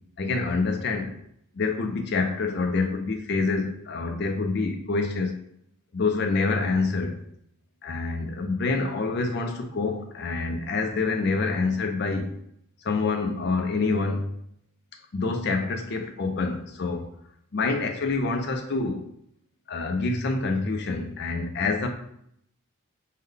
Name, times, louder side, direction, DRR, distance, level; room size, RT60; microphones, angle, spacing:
voice 1, 0.2-1.1 1.6-5.3 5.9-7.2 7.8-12.4 12.8-14.3 15.1-17.1 17.5-19.0 19.7-21.9, left 3 dB, 50° left, 0.4 m, -26 dB
3.6 x 2.2 x 3.2 m
head